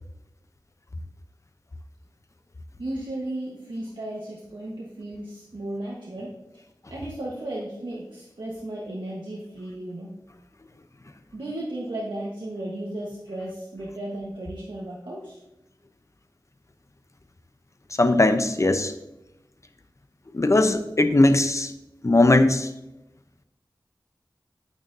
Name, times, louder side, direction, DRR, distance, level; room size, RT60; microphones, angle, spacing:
voice 1, 2.8-6.4 6.9-10.1 11.3-15.4, right 1 dB, 75° right, -4 dB, 1.3 m, -34 dB
voice 2, 18.0-18.9 20.3-21.7 22.0-22.7, left 2 dB, 40° left, 9 dB, 0.7 m, -19 dB
9.2 x 9.0 x 2.7 m, 0.92 s
wide cardioid pair, 60°, 8 cm